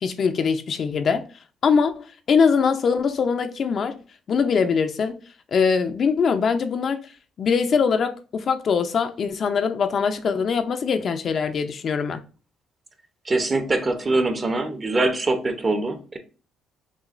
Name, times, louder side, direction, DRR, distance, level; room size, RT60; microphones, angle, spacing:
voice 1, 0.0-1.2 1.6-4.0 4.3-5.2 5.5-7.0 7.4-12.2, left 6 dB, 50° left, 0.5 m, -22 dB
voice 2, 13.3-16.2, right 2 dB, 30° right, 0.8 m, -23 dB
6.1 x 2.3 x 2.4 m
cardioid pair, 80°, 0 cm